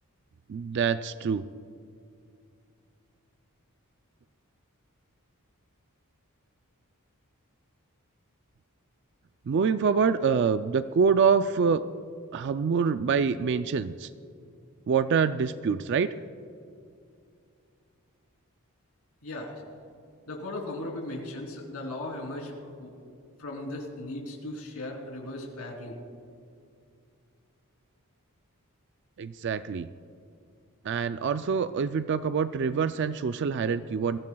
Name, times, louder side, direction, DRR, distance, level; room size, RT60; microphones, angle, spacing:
voice 1, 0.5-1.4 9.5-11.8 12.3-14.1 14.9-16.1 29.2-29.9 30.8-34.2, right 6 dB, 50° right, 12 dB, 0.3 m, -25 dB
voice 2, 19.2-19.6 20.3-22.9 23.4-26.0, left 1 dB, 75° left, 0 dB, 3.3 m, -37 dB
23.0 x 16.0 x 2.3 m, 2.4 s
head